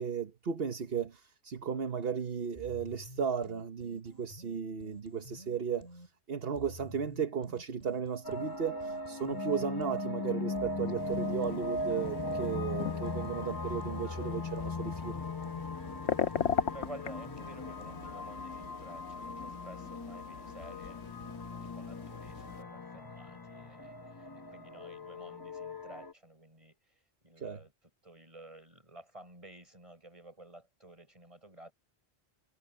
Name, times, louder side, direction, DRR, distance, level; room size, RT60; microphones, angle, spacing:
voice 1, 0.0-15.2 27.4-27.6, right 6 dB, 60° right, 1.4 m, -35 dB
sound 1, 2.6-6.1 6.6-10.1 10.6-18.4, equal, 40° left, 2.6 m, -52 dB
sound 2, 8.2-26.1, left 2 dB, 20° left, 0.8 m, -39 dB
sound 3, 11.0-22.6, left 7 dB, 75° left, 1.2 m, -40 dB
voice 2, 16.7-21.0 21.7-27.7 28.0-31.7, right 1 dB, 30° right, 6.4 m, -52 dB
omnidirectional pair, 1.1 m